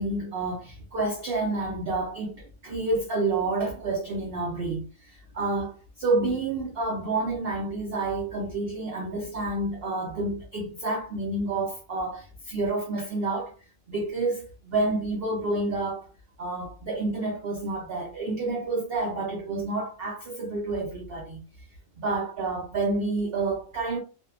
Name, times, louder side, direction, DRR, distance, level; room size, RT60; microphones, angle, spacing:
voice 1, 0.0-13.6 13.9-16.1 16.4-21.4 22.0-24.0, right 2 dB, 85° right, 0.5 m, -29 dB
2.6 x 2.1 x 2.4 m
omnidirectional pair, 1.7 m